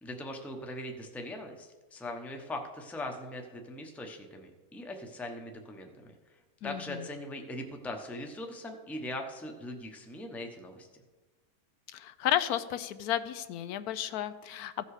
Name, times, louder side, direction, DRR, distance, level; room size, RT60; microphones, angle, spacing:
voice 1, 0.0-6.1 6.6-10.9, left 1 dB, ahead, 3 dB, 0.7 m, -40 dB
voice 2, 6.6-7.1 11.9-14.8, left 11 dB, 85° left, 13 dB, 1.1 m, -33 dB
15.5 x 5.4 x 4.8 m, 1.2 s
omnidirectional pair, 1.6 m